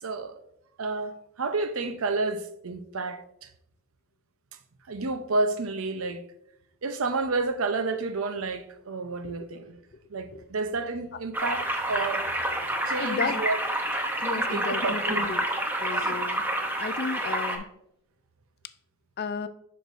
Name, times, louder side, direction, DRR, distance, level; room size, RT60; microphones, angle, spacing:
voice 1, 0.0-0.4 0.8-3.5 4.9-6.2 6.8-9.8 10.1-12.3 12.9-13.6 14.3-15.3 15.9-16.2, right 3 dB, 85° right, 0.7 m, -30 dB
sound 1, 11.3-17.6, right 1 dB, 10° right, 0.7 m, -28 dB
voice 2, 13.0-13.4 14.2-15.4 15.8-16.4 16.8-17.7 19.2-19.5, left 5 dB, 50° left, 0.4 m, -33 dB
8.0 x 5.9 x 2.6 m
head